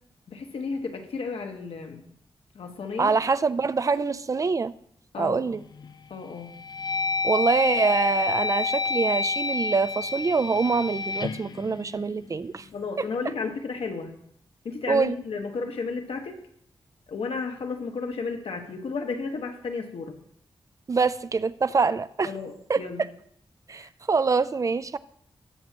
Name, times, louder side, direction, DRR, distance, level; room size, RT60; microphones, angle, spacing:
voice 1, 0.3-2.0 2.5-3.1 5.1-5.5 6.1-6.6 12.7-14.2 14.6-16.3 17.1-20.2 22.2-23.0 23.8-23.9, left 4 dB, 85° left, 1.4 m, -33 dB
voice 2, 3.0-4.7 5.2-5.6 7.2-12.7 14.9-15.2 20.9-22.3 22.7-22.8 23.7-25.0, right 4 dB, 35° right, 0.4 m, -25 dB
sound 1, 5.5-5.9 6.4-12.6, left 4 dB, 45° left, 0.4 m, -29 dB
20.5 x 7.3 x 2.9 m
wide cardioid pair, 135°, 9 cm